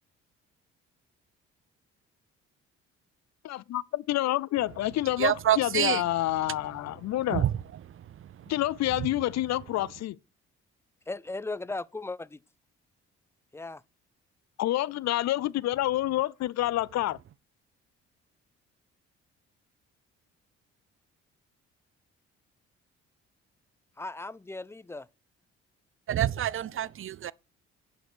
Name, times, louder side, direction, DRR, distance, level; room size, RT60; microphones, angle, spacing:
voice 1, 3.4-7.5 8.5-10.2 14.6-17.2, left 15 dB, 65° left, 0.5 m, -28 dB
voice 2, 5.2-6.0 7.3-7.5 26.1-27.3, right 11 dB, 45° right, 0.5 m, -26 dB
voice 3, 11.1-12.4 13.5-13.8 24.0-25.1, left 2 dB, 10° left, 0.5 m, -37 dB
10.0 x 5.6 x 6.1 m
supercardioid pair, 65°, 29 cm